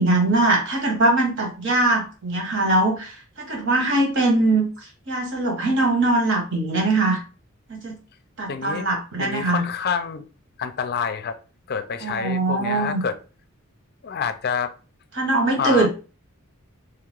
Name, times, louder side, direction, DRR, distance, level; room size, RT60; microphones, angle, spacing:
voice 1, 0.0-4.7 5.1-7.2 7.7-7.9 8.4-9.7 12.0-13.0 15.1-15.9, right 2 dB, 65° right, 0 dB, 1.4 m, -21 dB
voice 2, 8.5-8.9 9.2-10.2 10.6-11.4 11.7-13.1 14.0-14.7 15.6-15.9, left 6 dB, 50° left, 10 dB, 0.5 m, -27 dB
3.3 x 2.9 x 3.6 m, 0.35 s
head